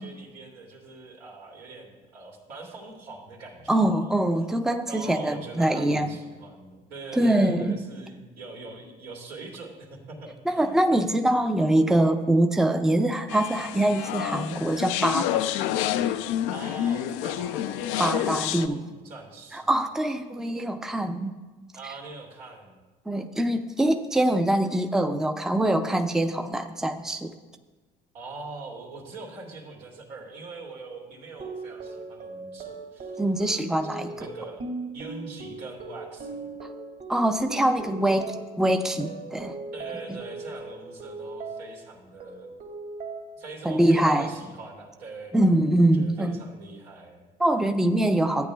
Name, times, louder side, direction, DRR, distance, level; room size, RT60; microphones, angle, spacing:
voice 1, 0.0-4.1 4.8-11.0 16.5-19.7 21.7-22.8 28.1-33.2 34.0-34.7 34.9-36.5 39.7-42.5 43.4-47.3, right 3 dB, 90° right, -3 dB, 2.5 m, -42 dB
voice 2, 3.7-6.1 7.1-7.8 10.5-15.5 18.0-18.8 19.5-21.4 23.1-27.4 33.2-34.1 37.1-39.6 40.1-40.2 43.6-44.3 45.3-46.4 47.4-48.5, right 1 dB, ahead, 7 dB, 0.6 m, -24 dB
sound 1, 13.3-18.7, left 11 dB, 75° left, 0.4 m, -28 dB
sound 2, 31.4-41.8 42.2-43.4 43.8-44.3, right 3 dB, 50° right, 2.3 m, -39 dB
14.0 x 8.8 x 2.3 m, 1.3 s
supercardioid pair, 70°, 20 cm